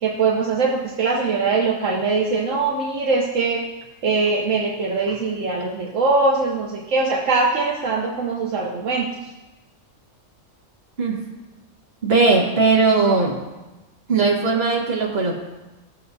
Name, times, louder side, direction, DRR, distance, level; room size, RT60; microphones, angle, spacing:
voice 1, 0.0-3.7 4.0-9.1, right 3 dB, 75° right, -2 dB, 1.3 m, -22 dB
voice 2, 12.0-13.4 14.1-15.3, right 3 dB, 50° right, -2 dB, 1.8 m, -18 dB
16.0 x 6.7 x 2.7 m, 1.1 s
omnidirectional pair, 1.3 m